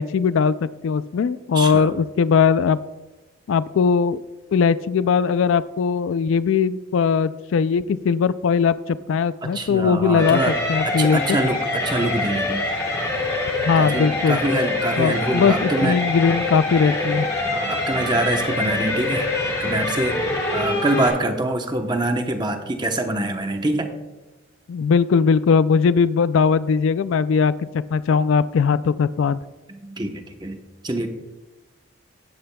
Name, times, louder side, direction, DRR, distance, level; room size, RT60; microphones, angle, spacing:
voice 1, 0.0-2.8 3.5-4.2 4.5-11.2 13.6-14.4 15.0-17.3 24.7-29.4, left 6 dB, 65° left, 16 dB, 0.3 m, -19 dB
voice 2, 1.5-2.0 9.4-10.5 11.0-12.6 13.8-16.0 17.5-19.3 19.6-20.2 20.5-23.9 29.7-31.1, right 2 dB, 20° right, 5 dB, 0.9 m, -25 dB
sound 1, 10.2-21.1, left 2 dB, 15° left, 2.3 m, -25 dB
16.0 x 10.5 x 2.3 m, 1.1 s
head